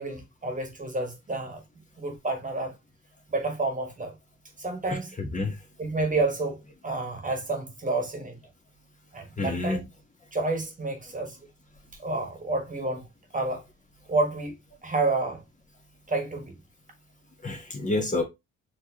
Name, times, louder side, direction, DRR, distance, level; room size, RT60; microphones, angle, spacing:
voice 1, 0.0-1.6 2.0-2.7 3.3-4.1 4.6-5.2 5.8-8.4 9.1-9.9 10.3-11.4 12.0-13.0 13.3-13.6 14.1-14.5 14.8-15.4 16.1-16.6, right 2 dB, 25° right, 1.4 m, -29 dB
voice 2, 4.9-5.5 9.4-9.8 17.4-18.2, left 2 dB, 25° left, 1.2 m, -28 dB
4.5 x 3.1 x 2.9 m
cardioid pair, 90°, 30 cm